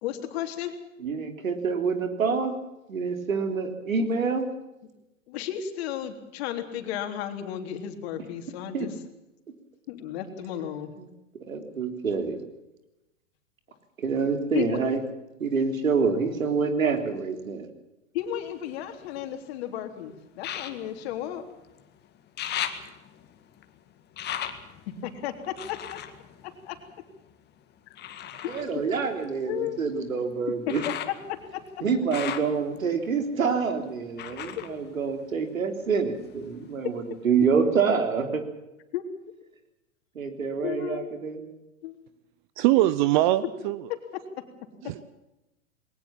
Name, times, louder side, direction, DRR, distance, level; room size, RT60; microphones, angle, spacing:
voice 1, 0.0-0.7 5.3-8.9 9.9-10.9 14.5-14.7 18.1-21.4 25.0-26.0 26.7-26.8 28.7-28.8 29.5-29.8 30.7-30.8 31.3-31.6 38.9-39.0 40.6-41.1 41.8-42.0, left 11 dB, 50° left, 6 dB, 3.5 m, -33 dB
voice 2, 1.0-2.6 2.9-4.5 8.7-8.9 11.0-11.1 11.5-12.4 14.0-15.0 15.4-17.7 28.5-30.8 31.8-38.4 40.2-41.5, right 5 dB, 80° right, 7 dB, 3.8 m, -27 dB
sound 1, 18.2-19.6 20.4-21.9 22.1-27.3 28.0-35.8 36.1-36.9 37.4-37.5, left 10 dB, 25° left, 2.0 m, -39 dB
voice 3, 42.6-43.9 44.8-45.0, right 15 dB, 35° right, 16 dB, 0.8 m, -22 dB
21.0 x 19.0 x 7.4 m, 0.95 s
hypercardioid pair, 120°, 40 cm